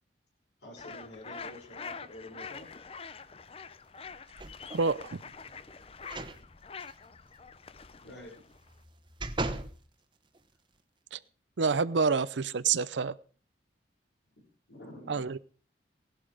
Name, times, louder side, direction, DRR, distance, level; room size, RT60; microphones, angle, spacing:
voice 1, 0.6-2.7 6.3-6.4 8.0-8.4 14.4-15.3, left 1 dB, 85° left, 5.7 m, -48 dB
sound 1, 0.8-8.8, left 5 dB, 35° left, 0.6 m, -46 dB
sound 2, 4.4-4.9 6.0-6.4 6.8-6.9 8.5-9.8 10.3-10.4, right 2 dB, 25° right, 1.2 m, -37 dB
voice 2, 4.7-5.2 11.1-11.2 11.6-13.2 15.1-15.4, right 5 dB, 90° right, 0.6 m, -28 dB
17.0 x 11.5 x 4.9 m
head